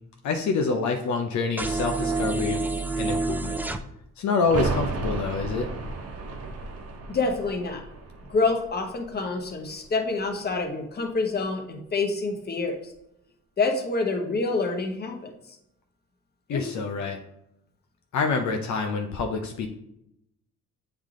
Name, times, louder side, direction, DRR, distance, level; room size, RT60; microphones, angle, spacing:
voice 1, 0.2-2.6 3.0-3.6 4.2-5.7 16.5-17.2 18.1-19.7, left 4 dB, 70° left, 3 dB, 0.7 m, -26 dB
sound 1, 1.6-3.8, right 3 dB, 5° right, 0.4 m, -27 dB
sound 2, 4.4-10.0 10.3-10.4, right 3 dB, 55° right, 1.0 m, -34 dB
voice 2, 7.1-7.8 8.3-12.9 13.6-15.6 16.5-16.7, left 3 dB, 35° left, 3 dB, 1.1 m, -27 dB
7.3 x 3.4 x 3.7 m, 0.79 s
cardioid pair, 90°, 30 cm